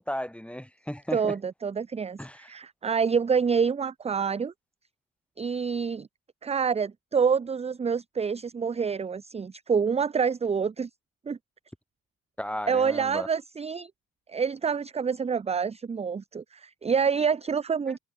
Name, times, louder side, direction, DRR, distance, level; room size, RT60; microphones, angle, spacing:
voice 1, 0.0-1.4 2.2-2.5 12.4-13.3, equal, ahead, 1.7 m, -35 dB
voice 2, 1.1-4.5 5.4-6.1 6.4-10.9 11.3-11.4 12.7-13.9 14.3-18.0, right 6 dB, 15° right, 0.5 m, -27 dB
hypercardioid pair, 50°, 49 cm